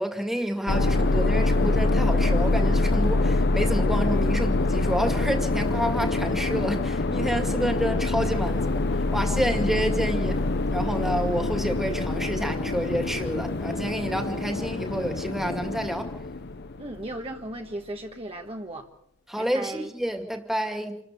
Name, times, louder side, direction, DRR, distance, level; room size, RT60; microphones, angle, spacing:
voice 1, 0.0-8.8 9.1-10.4 10.7-16.1 19.3-21.0, equal, ahead, 2.2 m, -29 dB
sound 1, 0.7-17.1, left 2 dB, 55° left, 0.8 m, -25 dB
voice 2, 16.8-18.9 19.4-19.9, right 1 dB, 25° right, 1.4 m, -36 dB
28.0 x 13.5 x 6.9 m
head